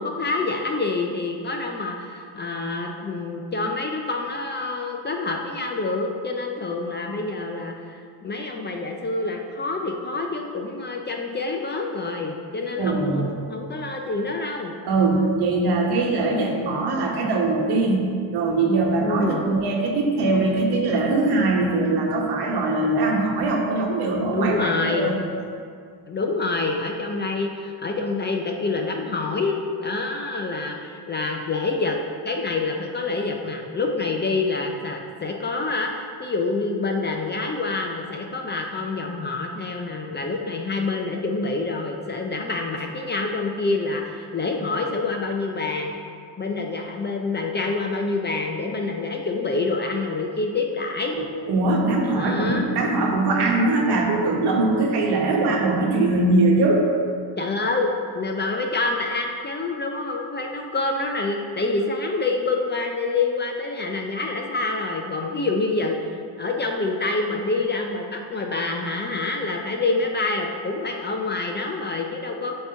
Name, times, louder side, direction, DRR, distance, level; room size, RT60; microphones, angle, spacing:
voice 1, 0.0-14.7 19.0-19.4 24.3-25.1 26.1-32.0 32.2-45.9 46.4-51.2 52.2-52.6 57.4-66.0 66.4-72.6, left 3 dB, 25° left, 2 dB, 0.5 m, -27 dB
voice 2, 12.8-13.3 14.8-25.1 51.2-56.9, right 2 dB, 60° right, 0 dB, 1.2 m, -21 dB
7.7 x 3.0 x 5.5 m, 2.2 s
cardioid pair, 100°, 44 cm